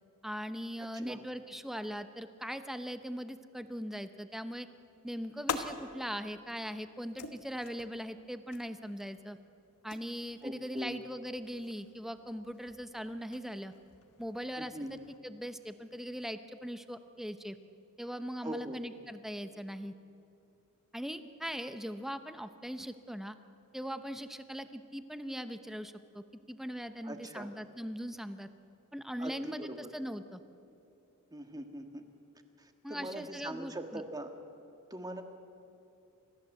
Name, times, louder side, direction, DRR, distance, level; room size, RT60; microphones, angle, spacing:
voice 1, 0.2-4.7 5.0-9.4 9.8-13.7 14.2-14.7 15.2-17.6 18.0-19.9 20.9-23.4 23.7-28.5 28.9-30.4 32.8-34.0, equal, ahead, 10 dB, 0.8 m, -40 dB
sound 1, 4.7-15.2, left 5 dB, 85° left, 1.3 m, -46 dB
voice 2, 10.4-11.0 14.6-14.9 18.4-18.8 27.0-27.5 29.2-29.8 31.3-32.0 32.6-34.3 34.9-35.2, right 1 dB, 15° right, 5 dB, 1.6 m, -41 dB
29.5 x 14.5 x 7.8 m, 2.7 s
head